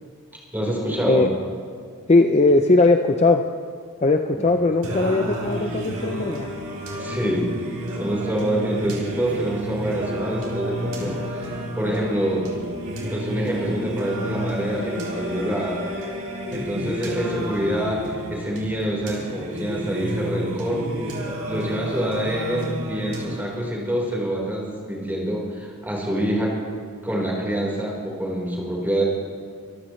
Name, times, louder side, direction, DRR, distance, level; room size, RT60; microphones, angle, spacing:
voice 1, 0.5-1.2 7.0-7.4 8.0-11.1 11.8-12.5 13.1-15.8 16.5-20.8 21.4-26.5 27.0-29.0, right 1 dB, 10° right, -3 dB, 4.3 m, -26 dB
voice 2, 2.1-3.4 4.0-6.5 16.8-17.0, left 3 dB, 30° left, 5 dB, 0.5 m, -19 dB
Singing, 4.8-23.8, equal, 85° right, 3.6 m, -31 dB
25.0 x 14.5 x 3.2 m, 2.2 s
head